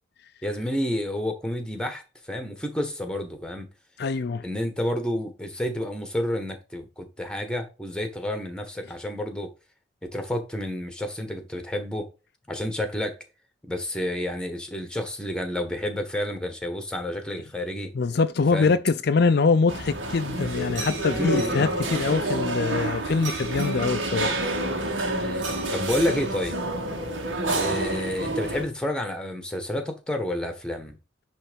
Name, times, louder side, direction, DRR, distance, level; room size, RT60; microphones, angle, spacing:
voice 1, 0.4-3.7 4.4-9.5 10.0-12.1 12.5-13.2 13.6-17.9 18.5-18.7 21.1-21.8 25.1-26.6 27.5-31.0, left 1 dB, 5° left, 1.3 m, -30 dB
voice 2, 4.0-4.4 17.9-24.3, left 4 dB, 55° left, 0.4 m, -24 dB
sound 1, 19.7-28.6, right 1 dB, 70° right, 2.1 m, -28 dB
10.0 x 3.4 x 5.2 m
head